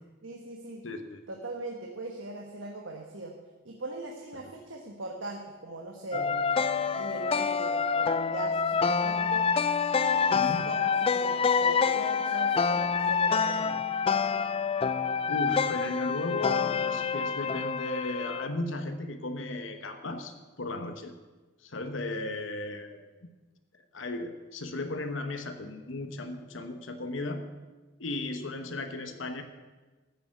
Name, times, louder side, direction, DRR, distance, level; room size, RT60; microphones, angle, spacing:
voice 1, 0.2-0.8 1.3-3.3 3.6-9.5 10.0-13.8, right 2 dB, 80° right, 1 dB, 1.4 m, -40 dB
voice 2, 0.8-1.2 10.3-10.7 15.3-21.1 21.6-23.0 23.9-27.4 28.0-29.4, left 2 dB, 75° left, 7 dB, 1.1 m, -35 dB
sound 1, 6.1-18.5, left 6 dB, 30° left, 0.4 m, -27 dB
14.0 x 7.0 x 7.7 m, 1.2 s
head